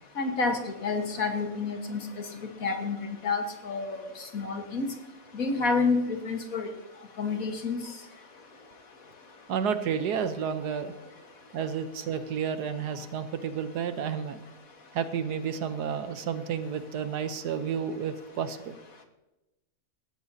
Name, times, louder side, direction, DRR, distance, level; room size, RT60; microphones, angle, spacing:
voice 1, 0.2-2.0 2.6-3.0 3.2-4.0 4.3-4.9 5.3-6.7 7.2-7.8, left 4 dB, 55° left, 4 dB, 1.8 m, -28 dB
voice 2, 9.5-10.9 11.5-14.4 14.9-18.7, right 7 dB, 70° right, 10 dB, 1.4 m, -31 dB
18.0 x 14.0 x 2.8 m, 0.97 s
omnidirectional pair, 1.8 m